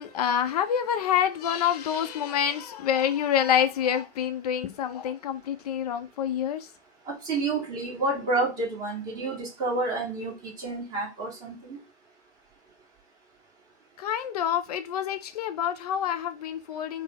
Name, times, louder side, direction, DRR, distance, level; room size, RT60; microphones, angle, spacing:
voice 1, 0.0-6.7 14.0-17.0, left 9 dB, 35° left, 0.4 m, -27 dB
voice 2, 7.1-11.8, right 3 dB, 25° right, 1.4 m, -29 dB
3.9 x 2.0 x 3.8 m
hypercardioid pair, 135°, 36 cm